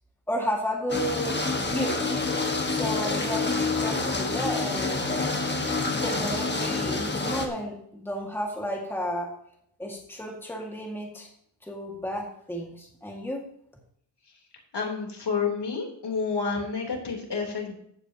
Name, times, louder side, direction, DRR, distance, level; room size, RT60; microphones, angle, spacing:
voice 1, 0.3-1.4 1.7-2.1 2.7-5.3 6.0-9.3 9.8-11.3 11.6-13.4, equal, 5° left, 0 dB, 1.9 m, -32 dB
sound 1, 0.9-7.5, left 3 dB, 25° left, 1.5 m, -27 dB
voice 2, 14.7-17.7, left 5 dB, 65° left, 1 dB, 3.5 m, -29 dB
14.5 x 8.9 x 2.9 m, 0.69 s
wide cardioid pair, 145°, 44 cm